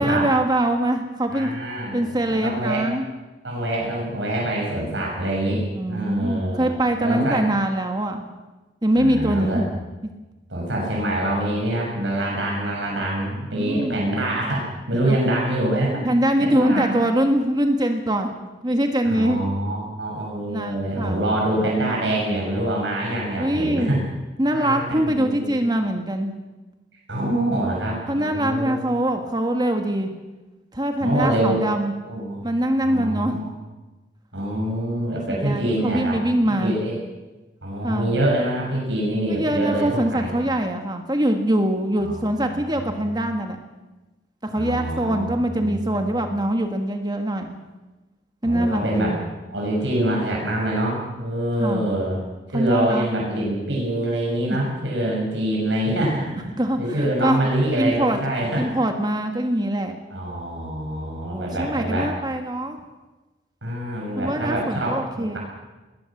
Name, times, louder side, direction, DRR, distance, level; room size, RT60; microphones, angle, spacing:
voice 1, 0.0-1.5 1.9-3.1 5.7-8.2 8.8-9.7 13.5-14.0 15.0-15.2 16.0-18.3 18.6-19.4 20.5-21.2 23.4-23.9 24.4-26.3 28.1-30.1 30.7-31.9 32.4-33.4 35.3-36.8 37.8-38.1 39.3-43.6 44.4-47.6 48.4-49.2 51.6-51.9 52.5-53.1 54.5-54.6 56.6-57.4 57.8-58.2 58.6-60.0 61.3-62.8 64.2-65.4, right 1 dB, 20° right, 5 dB, 1.6 m, -23 dB
voice 2, 1.3-2.8 3.4-6.7 7.0-7.4 8.9-9.7 10.5-16.0 16.4-17.0 19.0-24.0 24.5-25.6 27.1-28.9 31.0-31.6 32.0-32.4 32.8-33.5 34.3-36.2 36.4-37.0 37.6-40.3 42.0-42.9 44.5-46.3 48.4-49.2 49.5-52.2 52.5-58.6 60.1-62.1 63.6-65.4, right 1 dB, 75° right, -2 dB, 6.7 m, -25 dB
20.0 x 19.5 x 7.3 m, 1.1 s
head